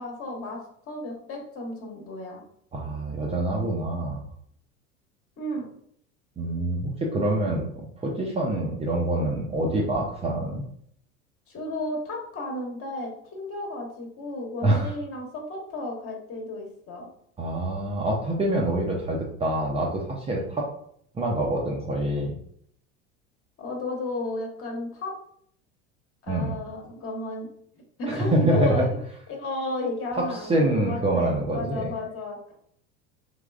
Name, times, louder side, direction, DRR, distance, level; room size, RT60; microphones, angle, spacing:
voice 1, 0.0-2.4 5.4-5.7 11.5-17.1 23.6-25.1 26.2-27.5 28.0-28.9 29.3-32.6, left 2 dB, 35° left, 0 dB, 1.2 m, -33 dB
voice 2, 2.7-4.2 6.4-7.6 8.0-10.6 14.6-15.0 17.4-20.7 21.1-22.3 26.3-26.6 28.1-28.9 30.2-30.3 30.5-31.9, right 1 dB, 15° right, -2 dB, 0.5 m, -25 dB
3.4 x 3.0 x 2.4 m, 0.66 s
hypercardioid pair, 80°, 37 cm